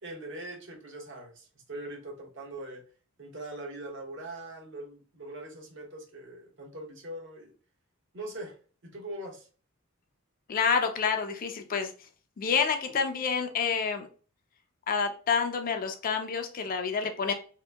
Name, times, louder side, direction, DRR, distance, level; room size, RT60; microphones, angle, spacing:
voice 1, 0.0-2.8 3.2-7.5 8.1-8.6 8.8-9.5, right 1 dB, 60° right, 1 dB, 0.9 m, -42 dB
voice 2, 10.5-11.9 12.4-14.1 14.9-17.3, left 6 dB, 40° left, 5 dB, 0.4 m, -28 dB
2.8 x 2.5 x 3.3 m, 0.39 s
head